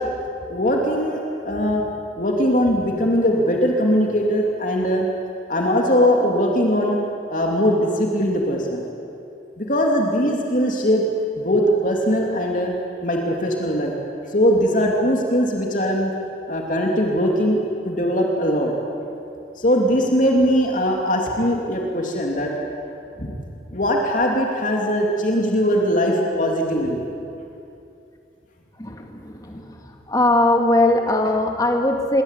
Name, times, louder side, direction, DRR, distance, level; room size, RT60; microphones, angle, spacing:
voice 1, 0.5-1.8 2.2-5.1 5.5-7.0 7.3-8.8 9.6-11.0 11.4-12.7 13.0-13.9 14.3-16.1 16.5-17.6 17.8-18.7 19.6-22.5 23.2-23.4 23.7-27.0 31.6-31.7, equal, 45° left, 0 dB, 2.9 m, -20 dB
voice 2, 28.8-29.7 30.1-32.2, left 2 dB, 20° left, 3 dB, 2.3 m, -20 dB
26.5 x 23.0 x 8.4 m, 2.6 s
head